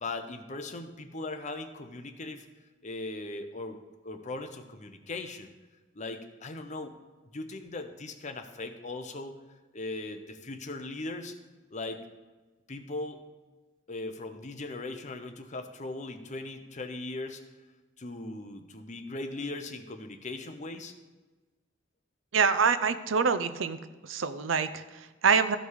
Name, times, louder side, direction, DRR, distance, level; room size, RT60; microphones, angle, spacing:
voice 1, 0.0-2.5 2.8-3.8 4.0-5.5 5.9-6.9 7.3-9.4 9.7-11.3 11.7-12.0 12.7-13.2 13.9-17.4 18.0-20.9, left 2 dB, 40° left, 7 dB, 0.8 m, -39 dB
voice 2, 22.3-23.8 24.0-25.6, right 5 dB, 85° right, 13 dB, 0.6 m, -26 dB
14.0 x 5.2 x 4.8 m, 1.2 s
head